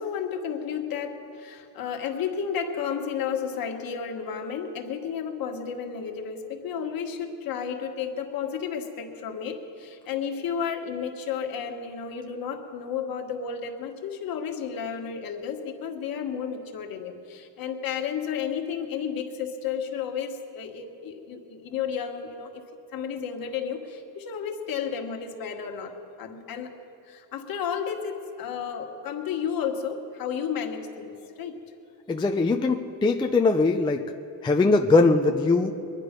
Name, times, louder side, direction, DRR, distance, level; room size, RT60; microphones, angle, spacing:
voice 1, 0.0-22.6 22.9-26.7 27.1-31.6, left 7 dB, 50° left, 3 dB, 1.7 m, -32 dB
voice 2, 32.1-34.1 34.4-35.7, left 3 dB, 10° left, 4 dB, 0.4 m, -21 dB
22.0 x 10.5 x 5.2 m, 2.6 s
cardioid pair, 120°, 44 cm